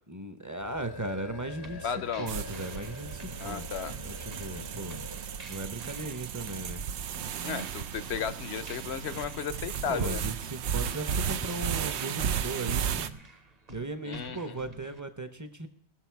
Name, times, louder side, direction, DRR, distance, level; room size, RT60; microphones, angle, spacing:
voice 1, 0.1-3.7 4.0-5.0 5.4-6.8 9.9-13.1 13.7-15.7, right 2 dB, 20° right, 10 dB, 0.8 m, -37 dB
sound 1, 0.6-5.6, left 3 dB, 25° left, 0.6 m, -46 dB
sound 2, 1.6-15.0, right 2 dB, 35° right, 1.1 m, -50 dB
voice 2, 1.8-2.3 3.4-4.0 7.4-10.2 14.0-14.6, left 7 dB, 70° left, 15 dB, 1.0 m, -34 dB
sound 3, 2.3-13.1, right 8 dB, 75° right, 0.9 m, -34 dB
20.0 x 6.9 x 4.6 m, 0.65 s
omnidirectional pair, 1.2 m